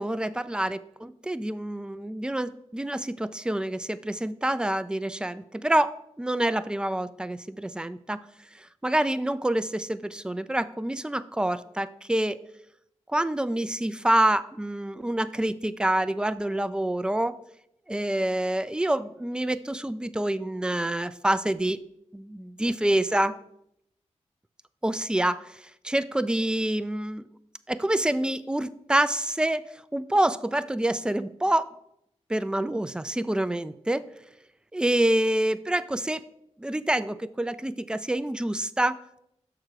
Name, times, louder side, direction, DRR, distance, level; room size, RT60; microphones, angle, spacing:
voice 1, 0.0-8.2 8.5-12.4 13.1-17.4 17.9-21.8 22.1-23.4 24.8-27.2 27.7-29.7 29.9-31.7 32.3-34.0 34.7-36.2 36.6-39.0, right 1 dB, 5° right, 14 dB, 0.4 m, -27 dB
6.4 x 4.9 x 4.7 m, 0.78 s
cardioid pair, 45°, 12 cm